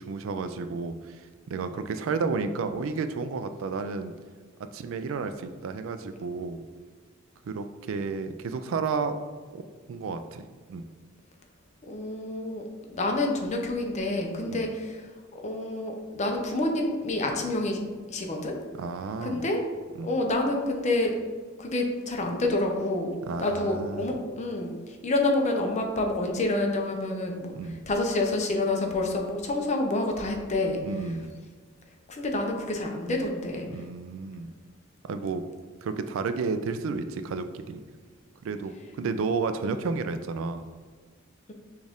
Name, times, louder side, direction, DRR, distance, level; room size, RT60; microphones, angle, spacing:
voice 1, 0.0-4.1 4.6-6.6 7.4-9.2 9.5-10.4 10.7-10.8 14.5-14.6 18.7-19.4 20.0-20.1 23.3-24.2 27.5-27.8 30.8-31.3 33.7-34.5 35.0-35.4 35.8-37.8 38.4-40.6, right 4 dB, 70° right, 10 dB, 0.3 m, -32 dB
voice 2, 11.9-12.6 12.9-15.0 15.3-17.8 18.1-18.5 19.2-19.6 20.0-21.1 21.6-23.1 23.4-24.7 25.0-27.6 27.9-30.8 32.1-33.7, left 2 dB, 35° left, 2 dB, 0.6 m, -28 dB
6.2 x 2.4 x 3.5 m, 1.5 s
head